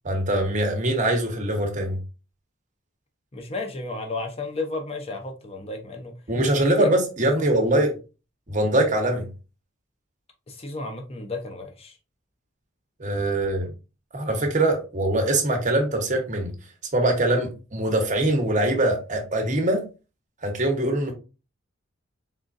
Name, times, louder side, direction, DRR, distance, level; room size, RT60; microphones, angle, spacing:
voice 1, 0.0-2.0 6.3-7.9 8.5-9.3 13.0-13.7 14.1-16.5 16.9-19.8 20.4-21.1, right 1 dB, 35° right, 1.1 m, -23 dB
voice 2, 3.3-6.1 6.7-6.9 7.4-7.9 10.5-12.0, left 3 dB, 30° left, 0.7 m, -33 dB
3.9 x 3.6 x 2.5 m
head